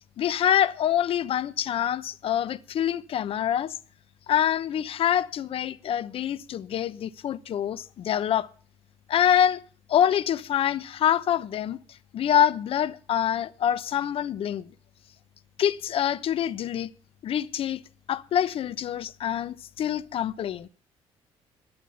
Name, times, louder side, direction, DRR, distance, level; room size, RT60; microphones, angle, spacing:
voice 1, 0.2-3.8 4.3-8.5 9.1-9.6 9.9-11.8 12.1-14.7 15.6-16.9 17.2-17.8 18.1-20.7, left 10 dB, 60° left, 0.9 m, -25 dB
17.5 x 11.0 x 5.7 m
cardioid pair, 85°, 11 cm